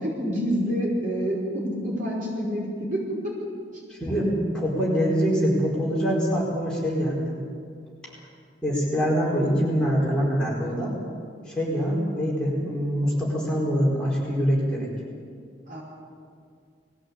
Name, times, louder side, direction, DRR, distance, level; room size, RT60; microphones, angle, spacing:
voice 1, 0.0-3.2 3.7-3.8 15.7-15.8, equal, 45° right, -3 dB, 5.2 m, -27 dB
voice 2, 4.0-7.3 8.6-10.9 11.5-14.9, equal, 5° left, -6 dB, 4.6 m, -24 dB
20.5 x 15.5 x 8.5 m, 2.2 s
head